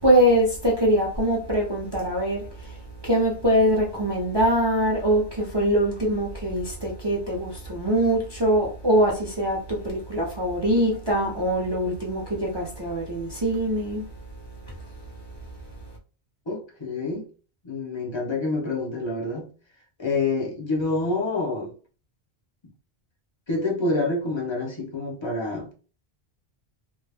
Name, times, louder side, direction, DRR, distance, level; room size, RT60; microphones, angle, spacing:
voice 1, 0.0-2.4 3.0-14.0, right 1 dB, 30° right, 0.5 m, -23 dB
voice 2, 16.5-17.3 17.6-19.5 20.0-21.7 23.5-25.7, left 3 dB, 35° left, 0.6 m, -27 dB
2.2 x 2.1 x 3.2 m
omnidirectional pair, 1.1 m